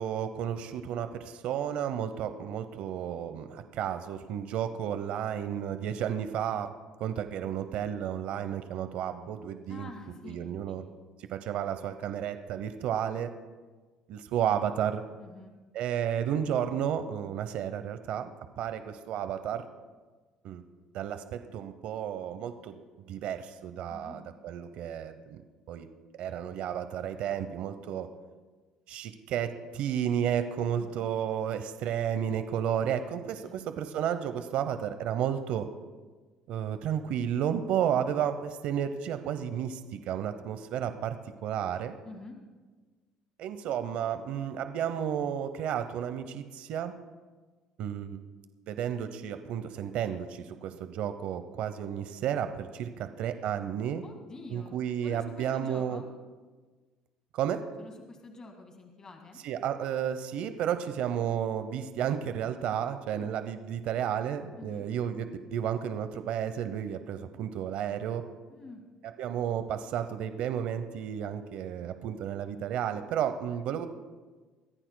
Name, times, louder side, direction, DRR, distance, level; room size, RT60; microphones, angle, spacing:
voice 1, 0.0-6.7 7.0-9.9 10.2-10.8 11.2-13.3 14.1-15.0 15.7-18.3 18.6-19.7 20.4-20.6 20.9-22.8 23.1-25.4 25.7-25.9 26.2-28.1 28.9-35.7 36.5-41.2 41.4-41.9 43.4-46.9 47.8-48.2 48.7-54.0 54.5-56.0 57.3-57.6 59.4-68.2 69.2-73.9, right 9 dB, 65° right, 10 dB, 0.8 m, -32 dB
voice 2, 9.7-10.4 10.7-10.8 15.2-15.5 23.9-24.2 30.8-30.9 33.4-33.6 42.0-42.4 53.0-53.1 54.0-56.1 57.8-59.4 63.1-63.3 64.6-64.9 68.5-68.8, left 3 dB, 30° left, 3 dB, 1.9 m, -47 dB
23.0 x 15.0 x 2.2 m, 1.3 s
cardioid pair, 120°, 2 cm